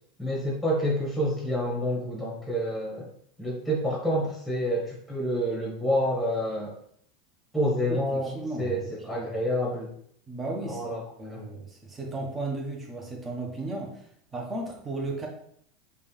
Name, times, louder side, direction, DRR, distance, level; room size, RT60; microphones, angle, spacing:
voice 1, 0.2-3.1 3.4-6.7 7.5-9.9 10.7-11.0 11.3-11.4, equal, ahead, -4 dB, 1.6 m, -28 dB
voice 2, 7.9-9.3 10.3-14.0 14.3-15.3, right 2 dB, 20° right, 0 dB, 1.2 m, -35 dB
5.1 x 2.6 x 3.4 m, 0.67 s
hypercardioid pair, 95°, 0 cm